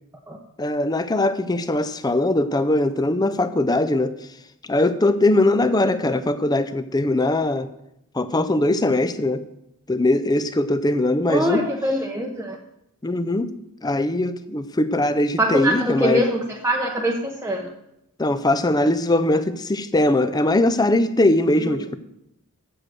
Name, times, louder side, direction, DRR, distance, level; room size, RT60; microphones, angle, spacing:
voice 1, 0.6-4.2 4.7-7.7 8.1-9.5 9.9-11.7 13.0-13.5 13.8-16.2 18.2-22.0, left 2 dB, 20° left, 12 dB, 0.5 m, -21 dB
voice 2, 11.3-12.6 15.4-17.7 21.6-21.7, equal, 10° right, -1 dB, 0.8 m, -23 dB
8.0 x 7.8 x 7.5 m, 0.82 s
head